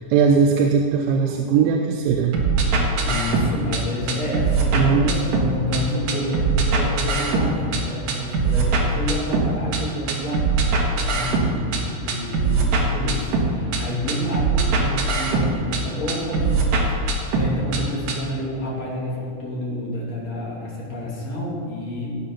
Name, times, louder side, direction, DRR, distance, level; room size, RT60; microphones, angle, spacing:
voice 1, 0.0-2.7 4.7-5.4, right 6 dB, 85° right, 3 dB, 3.1 m, -20 dB
sound 1, 2.3-3.8 4.1-5.8 6.1-7.8 8.1-9.8 10.1-11.8 12.1-13.8 14.1-15.8 16.1-17.8 18.1-18.2, right 4 dB, 60° right, 2.1 m, -21 dB
voice 2, 3.0-10.7 11.1-16.6 16.9-22.2, left 1 dB, 40° left, -5 dB, 3.5 m, -29 dB
16.5 x 7.8 x 5.6 m, 2.5 s
omnidirectional pair, 5.3 m